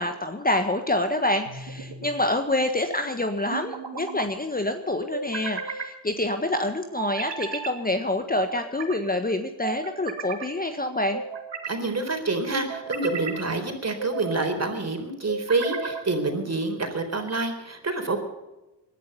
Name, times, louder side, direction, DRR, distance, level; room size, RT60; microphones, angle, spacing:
voice 1, 0.0-11.2, left 1 dB, 20° left, 7 dB, 1.5 m, -27 dB
sound 1, 1.5-2.1 3.5-4.3 5.1-5.9 7.0-7.7 8.3-9.0 9.6-10.5 11.1-11.8 12.5-13.4 14.0-14.5 15.3-16.1, right 5 dB, 60° right, 2.6 m, -34 dB
voice 2, 11.7-18.2, right 3 dB, 30° right, 6 dB, 4.1 m, -27 dB
20.0 x 11.5 x 5.6 m, 1.0 s
supercardioid pair, 45°, 48 cm